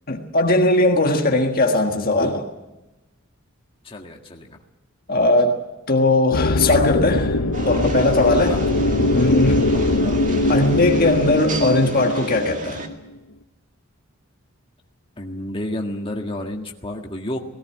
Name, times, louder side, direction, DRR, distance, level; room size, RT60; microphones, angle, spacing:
voice 1, 0.1-2.5 5.1-5.6 5.9-7.4 7.6-8.6 9.1-9.6 10.5-12.9, left 2 dB, 40° left, 3 dB, 1.6 m, -19 dB
voice 2, 3.8-4.6 8.4-8.6 15.2-17.4, left 1 dB, 25° left, 1 dB, 1.8 m, -30 dB
sound 1, 6.3-12.9, left 2 dB, 85° left, 1.1 m, -21 dB
sound 2, 7.5-12.9, right 2 dB, 35° right, 2.1 m, -32 dB
18.0 x 17.5 x 9.7 m, 1.0 s
head